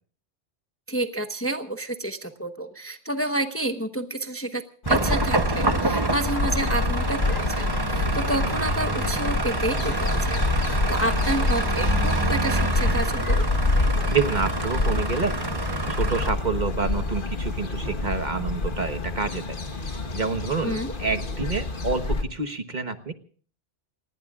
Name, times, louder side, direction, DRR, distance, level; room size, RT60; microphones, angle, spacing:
voice 1, 0.9-4.6 4.9-13.4 20.6-20.9, right 2 dB, 15° left, 7 dB, 1.0 m, -29 dB
sound 1, 4.8-22.2, left 3 dB, 50° left, 1.5 m, -27 dB
sound 2, 4.9-16.3, right 3 dB, 25° right, 0.9 m, -27 dB
voice 2, 14.1-15.3 15.9-19.6 19.8-23.1, right 4 dB, 40° right, 8 dB, 1.3 m, -28 dB
29.5 x 19.5 x 2.4 m, 0.43 s
omnidirectional pair, 1.2 m